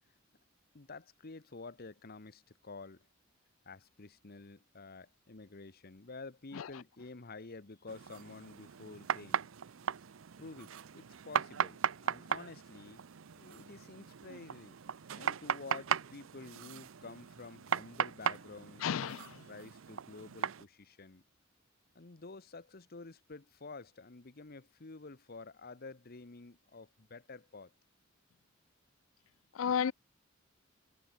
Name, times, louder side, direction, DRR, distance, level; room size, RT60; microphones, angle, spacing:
voice 1, 0.7-3.1 3.6-9.5 10.4-14.8 15.2-18.9 19.5-21.2 21.9-27.7, left 3 dB, 50° left, 1.1 m, -50 dB
sound 1, 7.9-20.6, right 7 dB, 75° right, 0.6 m, -38 dB
voice 2, 18.8-19.4 29.5-29.9, left 8 dB, 80° left, 0.4 m, -32 dB
head